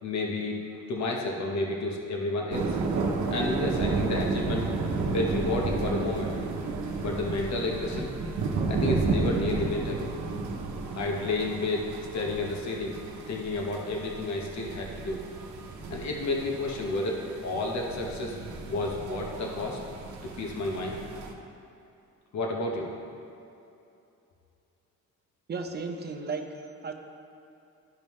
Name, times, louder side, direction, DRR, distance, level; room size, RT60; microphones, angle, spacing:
voice 1, 0.0-2.8 3.3-4.7 5.1-6.3 7.0-8.1 8.7-10.1 10.9-12.9 13.2-15.2 15.9-18.4 18.6-19.8 20.2-21.0 22.3-22.9, left 2 dB, 65° left, 0 dB, 1.2 m, -31 dB
sound 1, 2.5-21.3, right 3 dB, 70° right, 0.9 m, -32 dB
voice 2, 25.5-26.9, right 4 dB, 35° right, 5 dB, 0.8 m, -35 dB
12.5 x 5.3 x 3.2 m, 2.7 s
cardioid pair, 90°, 30 cm